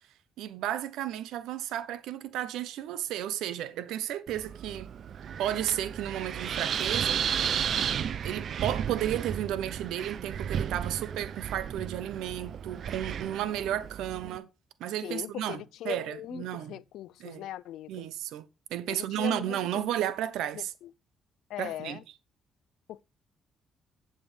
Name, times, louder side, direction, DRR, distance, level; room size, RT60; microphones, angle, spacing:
voice 1, 0.4-4.9 5.4-7.2 8.2-14.5 14.8-16.8 17.2-17.4 17.9-18.4 18.7-20.7 21.6-22.0, right 11 dB, 90° right, 0.8 m, -33 dB
Wind, 4.3-14.4, right 8 dB, 60° right, 0.4 m, -33 dB
voice 2, 15.0-18.1 18.9-19.8 20.5-20.9 21.5-22.0 22.9-23.0, left 13 dB, 85° left, 0.4 m, -40 dB
11.0 x 7.7 x 3.4 m
cardioid pair, 90°, 0 cm